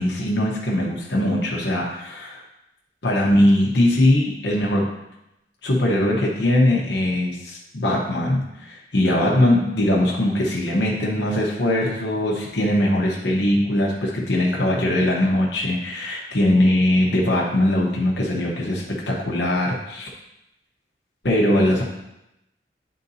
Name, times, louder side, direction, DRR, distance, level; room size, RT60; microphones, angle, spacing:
voice 1, 0.0-2.4 3.0-4.9 5.6-20.1 21.2-21.8, left 1 dB, 75° left, -3 dB, 1.0 m, -21 dB
9.7 x 3.9 x 2.7 m, 0.88 s
head